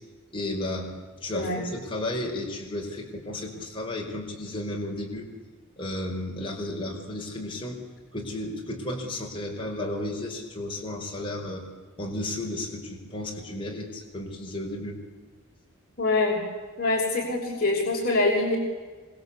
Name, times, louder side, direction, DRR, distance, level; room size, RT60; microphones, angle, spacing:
voice 1, 0.3-5.3 5.8-7.8 8.1-11.6 12.0-15.0, left 1 dB, 25° left, -1 dB, 5.2 m, -33 dB
voice 2, 16.0-16.4 16.8-18.6, left 2 dB, 45° left, -3 dB, 5.8 m, -24 dB
27.5 x 25.5 x 8.5 m, 1.4 s
head